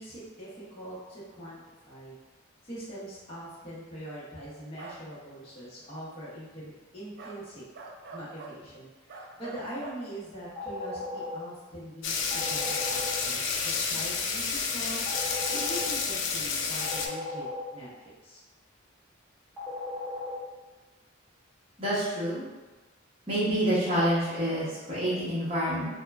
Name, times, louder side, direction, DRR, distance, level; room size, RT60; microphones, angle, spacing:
voice 1, 0.0-1.6 1.9-2.1 2.6-7.6 8.1-15.1 15.5-17.9 18.2-18.4, right 1 dB, 30° left, -9 dB, 0.7 m, -42 dB
sound 1, 4.8-5.0 7.2-7.4 7.7-8.6 9.1-10.0, right 3 dB, 55° right, 0.3 m, -44 dB
sound 2, 10.6-11.3 12.3-13.1 15.1-15.8 16.8-17.6 19.6-20.3, left 2 dB, ahead, 1.1 m, -37 dB
sound 3, 12.0-17.1, left 5 dB, 60° left, 0.3 m, -30 dB
voice 2, 21.8-22.4 23.3-25.8, equal, 30° right, -11 dB, 0.8 m, -27 dB
3.0 x 2.1 x 2.3 m, 1.2 s
head